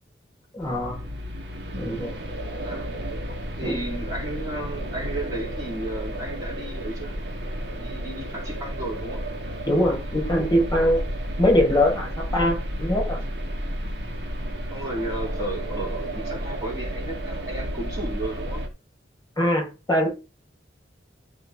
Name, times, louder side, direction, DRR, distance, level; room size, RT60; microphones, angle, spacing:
voice 1, 0.5-1.1 1.8-2.1 3.6-3.8 9.7-11.1 11.4-13.2 19.4-20.1, left 1 dB, 20° left, 0 dB, 5.7 m, -22 dB
sound 1, 0.6-18.7, equal, 65° right, 1.9 m, -32 dB
voice 2, 3.6-7.1 7.8-9.3 12.3-12.5 14.7-18.6, right 1 dB, 20° right, -4 dB, 4.3 m, -33 dB
13.0 x 5.4 x 3.9 m, 0.29 s
head